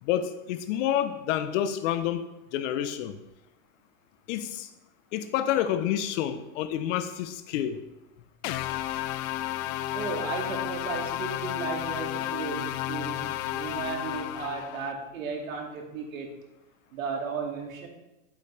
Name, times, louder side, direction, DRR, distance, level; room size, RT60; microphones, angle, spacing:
voice 1, 0.0-2.3 2.5-3.1 4.3-4.7 5.1-7.8, left 10 dB, 65° left, 11 dB, 1.0 m, -28 dB
sound 1, 8.4-14.9, left 14 dB, 45° left, 0.5 m, -32 dB
voice 2, 9.9-13.2 13.5-16.3 16.9-17.9, right 5 dB, 85° right, 1 dB, 2.6 m, -34 dB
11.0 x 8.3 x 3.4 m, 0.96 s
supercardioid pair, 120°, 40 cm